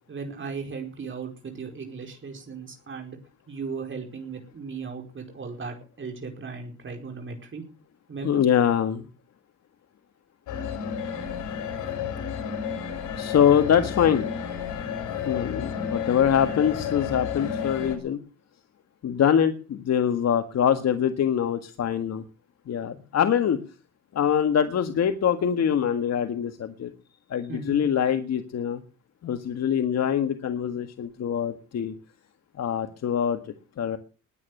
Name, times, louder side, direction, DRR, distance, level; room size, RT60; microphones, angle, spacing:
voice 1, 0.1-3.2 3.5-7.6 8.1-8.4 27.5-27.9, right 5 dB, 40° right, 3 dB, 4.9 m, -36 dB
voice 2, 8.2-9.1 13.2-14.3 15.3-18.2 19.0-22.2 22.7-23.6 24.2-26.9 27.3-28.8 29.2-31.9 32.6-33.4 33.8-34.0, left 8 dB, 60° left, 8 dB, 1.8 m, -24 dB
sound 1, 10.5-18.0, left 7 dB, 85° left, 5.0 m, -31 dB
20.5 x 9.3 x 6.7 m, 0.36 s
cardioid pair, 90°, 30 cm